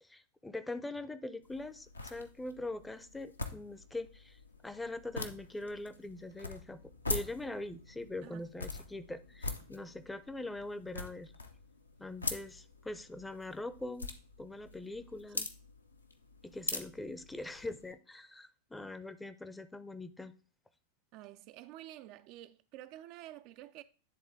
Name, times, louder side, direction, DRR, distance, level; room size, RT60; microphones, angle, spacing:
voice 1, 0.0-6.8 7.1-11.3 12.0-14.1 14.4-15.5 16.4-20.3, left 2 dB, 5° left, 0.5 m, -42 dB
sound 1, 1.4-17.9, left 3 dB, 80° left, 0.7 m, -44 dB
voice 2, 21.1-23.8, right 14 dB, 45° right, 0.3 m, -50 dB
10.0 x 3.7 x 3.6 m
figure-of-eight pair, 90°, 0 cm